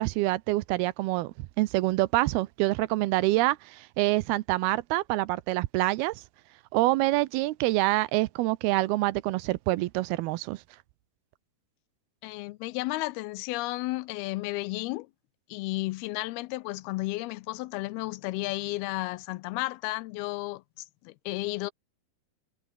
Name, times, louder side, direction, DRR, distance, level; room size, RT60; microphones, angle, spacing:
voice 1, 0.0-6.2 6.7-10.6, right 19 dB, 80° right, 2.6 m, -26 dB
voice 2, 12.2-15.1 15.5-21.7, left 20 dB, 80° left, 2.5 m, -33 dB
omnidirectional pair, 4.6 m